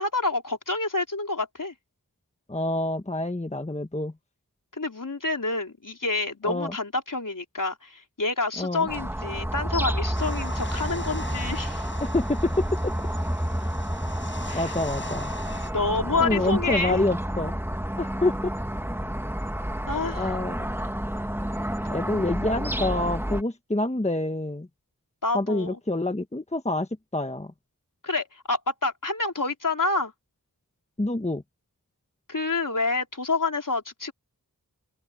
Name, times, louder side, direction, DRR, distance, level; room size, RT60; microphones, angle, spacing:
voice 1, 0.0-1.7 4.8-11.9 14.5-14.7 15.7-17.0 19.9-20.3 25.2-25.8 28.0-30.1 32.3-34.1, left 3 dB, 60° left, 4.0 m, -28 dB
voice 2, 2.5-4.1 6.4-6.7 8.6-8.9 12.0-12.9 14.5-15.3 16.2-17.5 18.0-18.5 20.1-20.6 21.9-24.7 25.3-27.5 31.0-31.4, left 2 dB, 20° left, 1.2 m, -27 dB
sound 1, 8.9-23.4, equal, 5° right, 1.8 m, -30 dB
sound 2, 10.1-15.7, left 2 dB, 35° left, 4.8 m, -41 dB
open air
wide cardioid pair, 55°, 36 cm